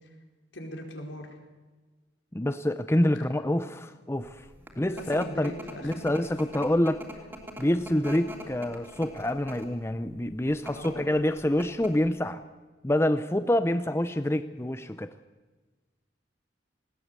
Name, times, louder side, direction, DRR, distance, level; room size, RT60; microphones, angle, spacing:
voice 1, 0.5-1.4 3.1-3.2 4.9-6.2 10.7-11.2, left 1 dB, 80° left, 2 dB, 4.7 m, -40 dB
voice 2, 2.3-4.5 4.8-5.5 5.8-7.1 7.6-12.4 12.8-15.1, left 1 dB, 15° left, 11 dB, 0.6 m, -27 dB
sound 1, 4.4-9.8 10.5-10.9 11.3-11.4 11.6-12.1, right 1 dB, 10° right, 3.2 m, -42 dB
20.0 x 18.0 x 8.2 m, 1.3 s
head